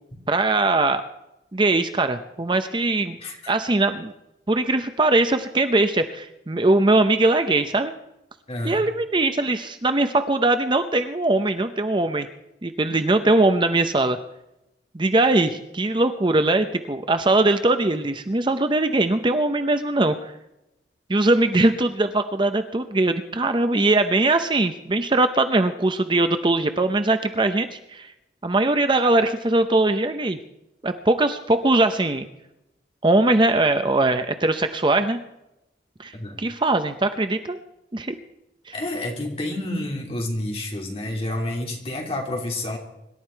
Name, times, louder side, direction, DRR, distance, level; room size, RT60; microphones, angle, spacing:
voice 1, 0.3-1.0 1.5-3.2 3.5-4.1 4.5-7.9 8.6-12.3 12.6-14.2 14.9-20.3 21.1-28.1 28.4-30.4 30.8-32.3 33.0-35.2 36.0-37.6 37.9-38.1 38.7-38.8, right 2 dB, 25° right, 9 dB, 0.7 m, -21 dB
voice 2, 8.5-8.8 36.1-36.4 38.7-42.8, left 1 dB, 35° left, 0 dB, 3.1 m, -29 dB
25.5 x 11.5 x 4.6 m, 0.89 s
head